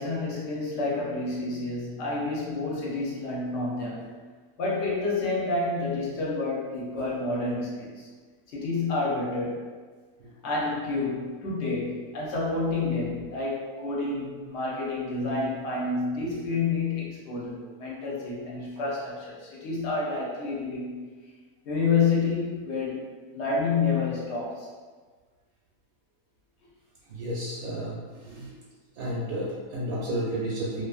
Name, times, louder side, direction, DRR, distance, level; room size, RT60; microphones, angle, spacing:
voice 1, 0.0-4.1 4.6-8.1 8.5-9.6 10.4-21.0 21.6-23.0 23.3-24.7, left 3 dB, 60° left, -4 dB, 0.8 m, -29 dB
voice 2, 27.1-28.5 29.0-30.8, right 1 dB, 85° right, -6 dB, 1.1 m, -32 dB
2.5 x 2.4 x 2.3 m, 1.5 s
omnidirectional pair, 1.5 m